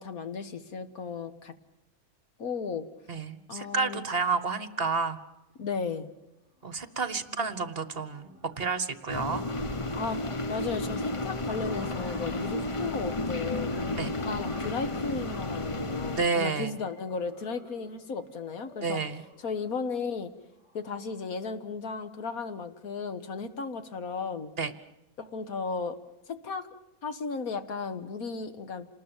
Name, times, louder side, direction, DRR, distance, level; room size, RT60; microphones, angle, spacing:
voice 1, 0.0-1.5 2.4-2.9 3.5-4.0 5.6-6.1 7.4-7.7 10.0-10.2 10.5-13.7 14.2-19.0 19.4-20.3 20.7-24.5 25.2-26.0 26.3-26.7 27.0-28.9, left 5 dB, 80° left, 10 dB, 1.9 m, -35 dB
voice 2, 3.1-5.2 6.6-9.4 14.0-14.1 16.1-16.7 18.8-19.2 24.6-24.7, right 4 dB, 45° right, 13 dB, 1.4 m, -30 dB
sound 1, 5.4-5.7 6.0-6.3 6.6-21.4, left 1 dB, 50° left, 5.0 m, -53 dB
sound 2, 9.1-16.3, left 2 dB, 25° left, 0.8 m, -32 dB
28.0 x 19.5 x 7.3 m, 0.90 s
omnidirectional pair, 1.5 m